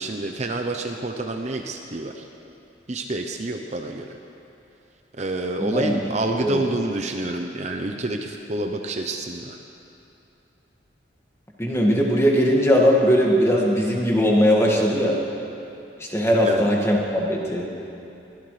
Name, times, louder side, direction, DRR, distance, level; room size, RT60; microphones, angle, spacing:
voice 1, 0.0-2.3 2.9-4.2 5.2-9.6 16.4-16.7, right 2 dB, 40° right, 3 dB, 0.7 m, -28 dB
voice 2, 5.6-6.0 6.4-6.6 11.6-15.2 16.0-17.7, equal, 15° left, -2 dB, 1.9 m, -19 dB
22.5 x 16.5 x 3.3 m, 2.8 s
head